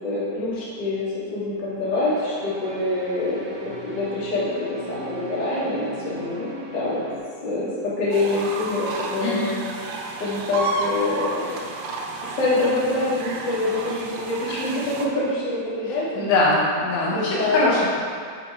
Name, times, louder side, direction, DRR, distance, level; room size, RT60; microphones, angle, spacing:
voice 1, 0.0-3.4 3.8-7.0 7.4-9.5 10.2-11.6 12.2-16.2 17.1-17.7, left 2 dB, 45° left, -8 dB, 1.4 m, -25 dB
sound 1, 2.0-7.2, equal, 55° right, 3.0 m, -38 dB
sound 2, 8.1-15.1, right 3 dB, 80° right, 3.0 m, -31 dB
voice 2, 9.2-9.6 15.9-18.0, left 2 dB, 80° left, -6 dB, 3.8 m, -22 dB
7.6 x 5.8 x 4.9 m, 2.1 s
omnidirectional pair, 5.4 m